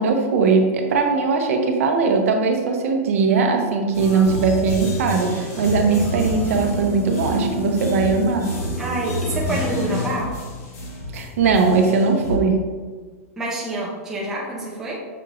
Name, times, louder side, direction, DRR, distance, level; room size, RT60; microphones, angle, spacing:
voice 1, 0.0-8.5 11.1-12.6, right 4 dB, 65° right, 3 dB, 0.6 m, -19 dB
sound 1, 3.9-12.4, left 1 dB, 80° left, 1.2 m, -28 dB
voice 2, 8.8-10.4 13.4-15.0, right 2 dB, 5° right, -4 dB, 0.4 m, -27 dB
5.8 x 3.0 x 2.4 m, 1.4 s
supercardioid pair, 180°, 8 cm